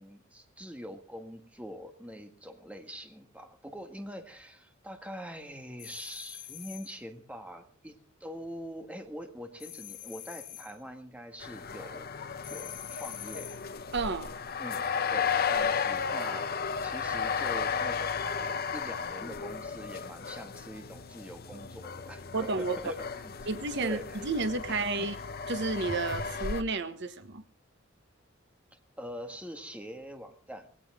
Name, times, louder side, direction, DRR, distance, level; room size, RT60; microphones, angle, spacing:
voice 1, 0.0-7.9 8.2-13.5 14.6-14.8 15.1-23.3 23.8-24.2 24.7-25.1 29.0-30.7, equal, 5° right, 5 dB, 1.6 m, -44 dB
sound 1, 5.8-7.0 9.6-10.8 12.4-13.7, left 13 dB, 80° left, 2.3 m, -45 dB
sound 2, 11.4-26.6, left 6 dB, 50° left, 0.8 m, -34 dB
voice 2, 13.9-14.3 22.3-22.8 23.5-25.1 25.5-27.4, right 3 dB, 60° right, 10 dB, 1.2 m, -31 dB
19.0 x 17.0 x 3.6 m, 0.41 s
head